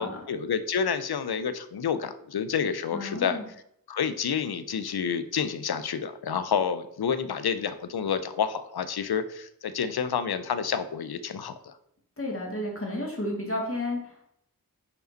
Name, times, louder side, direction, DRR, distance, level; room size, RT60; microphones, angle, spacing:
voice 1, 0.0-3.4 3.9-11.7, left 7 dB, 80° left, 12 dB, 0.6 m, -29 dB
voice 2, 2.9-3.4 12.2-14.3, left 1 dB, 35° left, -1 dB, 2.0 m, -32 dB
5.4 x 4.9 x 4.4 m, 0.73 s
wide cardioid pair, 55°, 37 cm